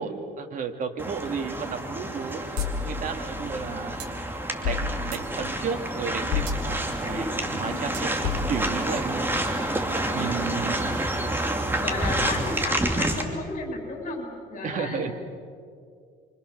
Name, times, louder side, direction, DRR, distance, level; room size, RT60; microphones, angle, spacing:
voice 1, 0.0-2.4 2.8-4.0 4.6-9.8 10.1-11.0 14.6-15.1, right 6 dB, 50° right, 4 dB, 2.7 m, -33 dB
sound 1, 1.0-13.2, right 1 dB, 10° right, 2.9 m, -29 dB
sound 2, 2.6-4.0 4.6-5.5 6.3-7.2 8.2-9.1, left 7 dB, 85° left, 2.2 m, -32 dB
sound 3, 2.6-2.7 3.0-3.1 4.0-4.1 4.7-5.3 6.5-6.6 7.9-8.1, right 9 dB, 80° right, 4.1 m, -39 dB
voice 2, 6.9-8.3 10.0-11.0 11.8-14.2 14.5-15.1, left 3 dB, 50° left, 2 dB, 7.5 m, -35 dB
28.5 x 25.5 x 6.9 m, 2.2 s
cardioid pair, 110°, 17 cm